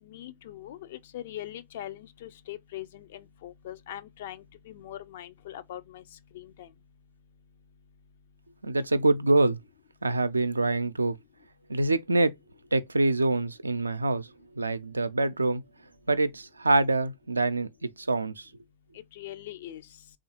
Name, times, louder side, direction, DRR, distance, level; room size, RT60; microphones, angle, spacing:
voice 1, 0.0-6.0 6.3-6.7 19.1-19.8, left 12 dB, 55° left, 0.4 m, -42 dB
voice 2, 8.6-9.6 10.0-11.2 11.7-12.3 12.7-14.3 14.6-15.6 16.1-18.5, right 2 dB, 80° right, 0.3 m, -25 dB
3.3 x 2.3 x 4.2 m
figure-of-eight pair, 90°, 0 cm